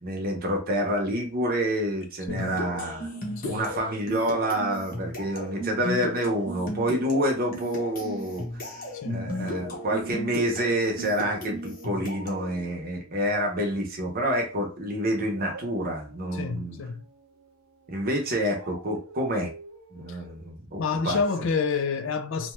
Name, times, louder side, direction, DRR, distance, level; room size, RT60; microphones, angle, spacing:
voice 1, 0.0-3.1 3.5-8.4 9.1-16.8 17.9-19.5 19.9-21.2, equal, 40° right, 0.7 m, -28 dB
sound 1, 2.3-12.5, left 1 dB, 40° left, 0.8 m, -35 dB
Dog, 7.3-8.8 9.2-14.3 15.3-20.5, right 4 dB, 80° right, 0.6 m, -48 dB
voice 2, 8.9-9.3 16.3-17.1 20.1-20.2 20.8-22.5, left 5 dB, 60° left, 0.4 m, -28 dB
2.7 x 2.2 x 3.1 m
head